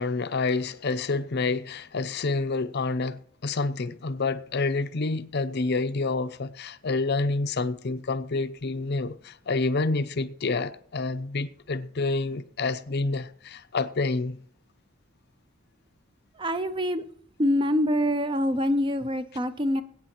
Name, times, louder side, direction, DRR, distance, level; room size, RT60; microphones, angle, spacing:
voice 1, 0.0-14.4, left 3 dB, 50° left, 0.6 m, -28 dB
voice 2, 16.4-17.0 17.4-19.8, equal, 20° right, 0.5 m, -25 dB
21.0 x 8.6 x 3.0 m
head